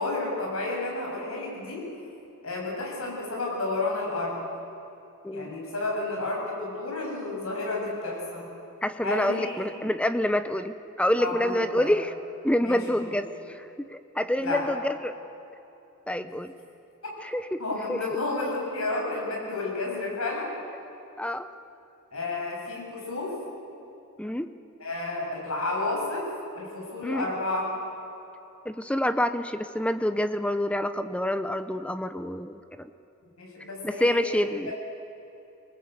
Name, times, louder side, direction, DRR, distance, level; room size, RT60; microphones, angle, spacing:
voice 1, 0.0-1.9 2.4-4.4 5.3-8.5 9.0-9.9 11.2-11.9 12.6-13.0 14.4-14.7 16.2-16.3 17.0-17.1 17.6-20.5 22.1-23.4 24.8-26.3 26.5-27.7 33.4-34.7, left 2 dB, 75° left, -1 dB, 7.1 m, -31 dB
voice 2, 8.8-12.1 12.4-15.2 16.1-16.5 17.2-17.6 17.9-18.0 21.2-21.5 24.2-24.5 27.0-27.2 28.7-32.9 33.8-34.7, left 1 dB, 5° left, 11 dB, 0.6 m, -27 dB
25.5 x 19.5 x 8.0 m, 2.9 s
head